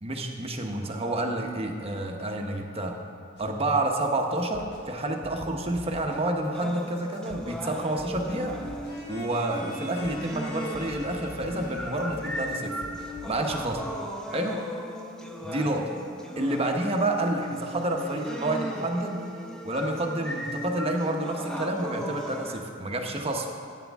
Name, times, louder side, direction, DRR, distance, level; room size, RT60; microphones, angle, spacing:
voice 1, 0.0-2.9 3.4-8.6 9.1-12.7 13.3-13.8 14.3-14.6 15.4-15.9 16.4-19.2 19.6-23.4, right 1 dB, 30° right, 2 dB, 1.0 m, -29 dB
sound 1, 3.4-4.9 5.2-7.6 8.0-13.7, equal, 60° left, 1.4 m, -47 dB
sound 2, 6.5-22.5, equal, 5° left, 0.9 m, -37 dB
sound 3, 8.8-13.4, left 2 dB, 25° left, 2.5 m, -45 dB
15.0 x 9.3 x 3.6 m, 2.3 s
head